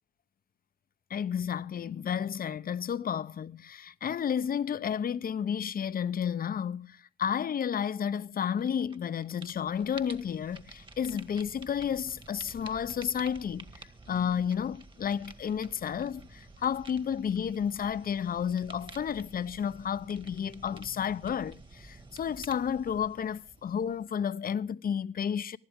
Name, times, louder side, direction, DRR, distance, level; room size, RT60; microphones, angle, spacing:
voice 1, 1.1-25.6, left 8 dB, 45° left, 0.8 m, -32 dB
sound 1, 8.6-9.0 9.2-24.2, right 3 dB, 25° right, 1.9 m, -51 dB
24.0 x 11.5 x 3.7 m
cardioid pair, 90°, 20 cm